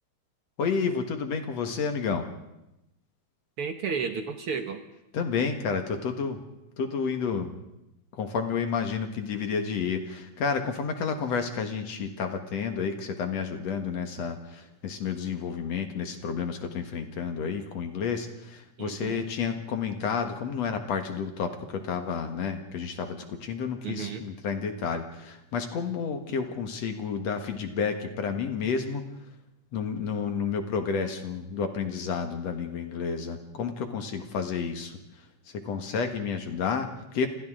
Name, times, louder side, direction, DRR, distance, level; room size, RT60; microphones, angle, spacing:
voice 1, 0.6-2.3 5.1-6.4 6.8-7.6 8.1-29.1 29.7-35.0 35.5-37.3, left 6 dB, 65° left, 6 dB, 2.7 m, -30 dB
voice 2, 3.6-4.8 18.8-19.2 23.8-24.2, right 6 dB, 60° right, 6 dB, 1.7 m, -32 dB
29.0 x 27.0 x 3.8 m, 0.89 s
omnidirectional pair, 3.4 m